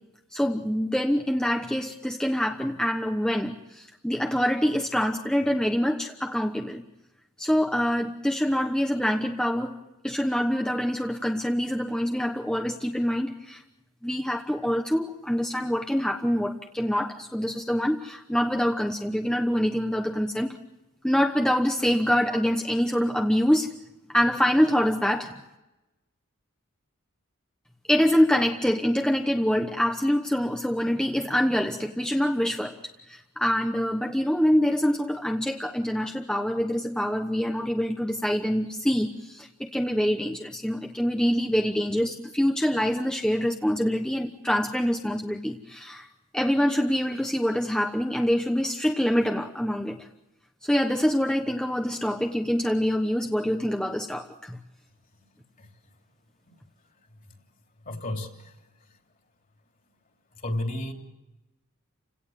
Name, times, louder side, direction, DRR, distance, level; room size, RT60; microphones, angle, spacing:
voice 1, 0.3-6.8 7.4-9.8 10.0-13.6 14.0-20.5 21.0-23.7 24.1-25.3 27.9-32.8 33.1-46.1 46.3-50.0 50.6-54.6, equal, 5° left, 3 dB, 1.0 m, -25 dB
voice 2, 57.8-58.6 60.4-60.9, left 1 dB, 40° left, 3 dB, 3.2 m, -32 dB
29.5 x 17.5 x 7.4 m, 1.0 s
head